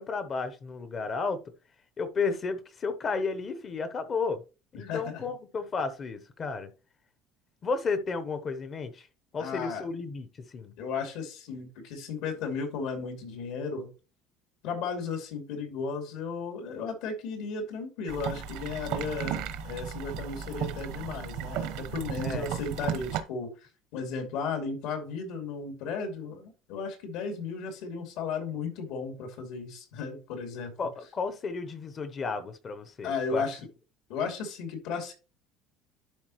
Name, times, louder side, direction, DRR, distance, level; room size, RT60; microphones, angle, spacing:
voice 1, 0.0-1.4 2.0-4.4 4.7-6.7 7.6-9.1 9.3-10.7 22.2-22.5 30.8-33.4, left 4 dB, 25° left, 0.8 m, -33 dB
voice 2, 4.7-5.2 9.4-9.8 10.8-13.9 14.6-30.7 33.0-33.6 34.1-35.1, left 5 dB, 70° left, 2.6 m, -35 dB
sound 1, 18.1-23.2, right 9 dB, 65° right, 1.0 m, -35 dB
11.5 x 4.2 x 3.0 m
cardioid pair, 175°, 0 cm